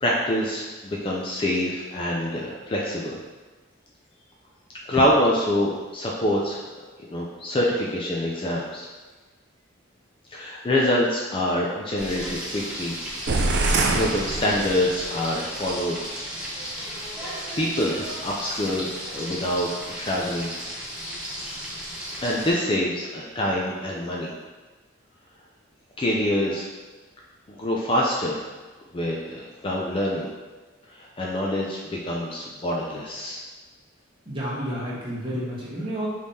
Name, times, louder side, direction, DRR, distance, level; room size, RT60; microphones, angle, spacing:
voice 1, 0.0-3.2 4.9-6.7 7.0-8.9 10.3-13.0 13.9-16.0 17.2-19.7 20.0-20.5 22.2-24.3 26.0-26.6 27.6-28.4 28.9-30.3 30.9-33.4, left 1 dB, 25° left, -3 dB, 0.4 m, -25 dB
Frying (food), 12.0-22.5, equal, 5° right, 0.7 m, -34 dB
sound 1, 13.3-15.1, right 3 dB, 55° right, 0.4 m, -24 dB
voice 2, 34.2-36.1, equal, 25° right, -8 dB, 1.2 m, -30 dB
5.2 x 3.3 x 2.7 m, 1.3 s
head